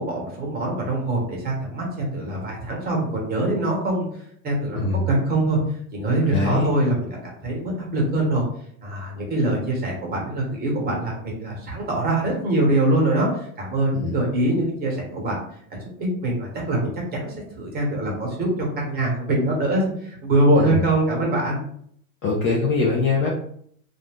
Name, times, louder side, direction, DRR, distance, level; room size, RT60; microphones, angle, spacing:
voice 1, 0.0-4.1 4.4-5.6 5.9-7.2 7.4-8.5 8.8-15.4 15.7-18.5 18.8-21.6, right 1 dB, 20° right, -2 dB, 1.1 m, -23 dB
voice 2, 6.3-6.7 13.9-14.1 20.6-20.8 22.2-23.3, left 4 dB, 30° left, -3 dB, 0.4 m, -22 dB
2.5 x 2.4 x 3.5 m, 0.65 s
supercardioid pair, 135°, 43 cm